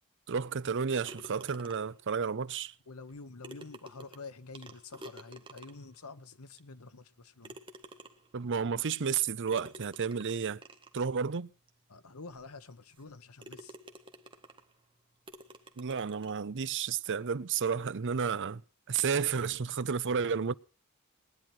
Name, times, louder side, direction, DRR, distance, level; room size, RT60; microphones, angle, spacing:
voice 1, 0.3-2.7 8.3-10.6 10.9-11.5 15.8-18.6 18.9-20.5, right 6 dB, 55° right, 0.6 m, -31 dB
sound 1, 1.1-2.0 3.1-3.2 3.4-6.0 6.6-6.7 7.4-8.4 9.5-11.0 11.7-11.8 12.3-12.4 12.9-13.1 13.4-14.7 15.3-16.4, right 1 dB, 25° right, 1.6 m, -50 dB
voice 2, 2.9-7.6 11.9-13.8, left 3 dB, 85° left, 1.2 m, -48 dB
20.5 x 10.5 x 4.5 m
head